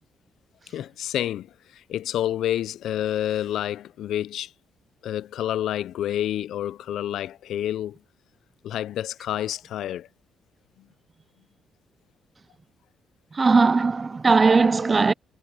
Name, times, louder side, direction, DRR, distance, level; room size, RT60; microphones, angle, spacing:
voice 1, 0.7-4.5 5.0-8.0 8.6-10.1, left 11 dB, 75° left, 0.4 m, -29 dB
voice 2, 13.3-15.1, right 4 dB, 30° right, 0.4 m, -18 dB
cardioid pair, 90°, 0 cm